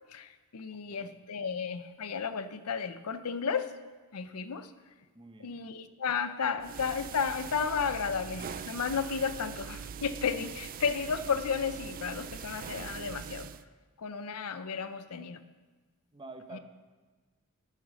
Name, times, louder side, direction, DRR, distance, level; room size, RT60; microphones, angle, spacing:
voice 1, 0.1-3.7 4.1-4.7 5.4-13.5 14.0-15.4 16.5-16.6, left 6 dB, 90° left, 12 dB, 0.6 m, -33 dB
voice 2, 0.7-1.1 5.1-5.6 16.1-16.6, right 3 dB, 25° right, 7 dB, 0.8 m, -48 dB
sound 1, 6.6-13.6, right 7 dB, 40° right, 0.3 m, -42 dB
9.1 x 7.7 x 6.3 m, 1.4 s
head